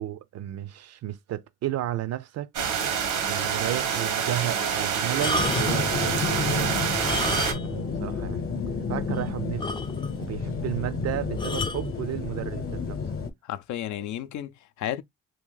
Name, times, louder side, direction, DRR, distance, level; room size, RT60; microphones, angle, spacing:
voice 1, 0.0-2.5 3.3-8.5 8.9-9.7 10.2-13.0, right 13 dB, 60° right, 0.5 m, -33 dB
sound 1, 2.5-7.5, right 7 dB, 90° right, 1.1 m, -27 dB
sound 2, 5.1-5.9 6.9-7.9 8.1-8.3 8.8-8.9 9.1-9.2 9.6-10.3 11.4-11.9 12.7-13.0, left 2 dB, 15° left, 0.3 m, -31 dB
sound 3, 5.4-13.3, left 5 dB, 45° left, 0.8 m, -31 dB
voice 2, 13.4-15.0, left 11 dB, 75° left, 0.5 m, -33 dB
2.8 x 2.6 x 3.8 m
cardioid pair, 90°, 30 cm